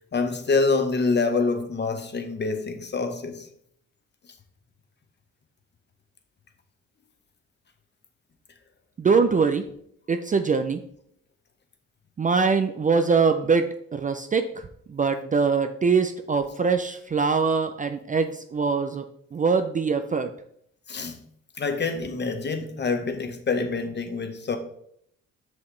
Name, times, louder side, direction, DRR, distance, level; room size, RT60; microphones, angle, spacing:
voice 1, 0.1-3.5 20.9-21.2 21.6-24.6, left 4 dB, 35° left, 1.0 m, -26 dB
voice 2, 9.0-9.6 10.1-10.8 12.2-13.7 13.9-14.4 14.9-19.0 19.3-20.3, right 5 dB, 25° right, 0.4 m, -23 dB
6.1 x 5.7 x 3.2 m
cardioid pair, 90°, 30 cm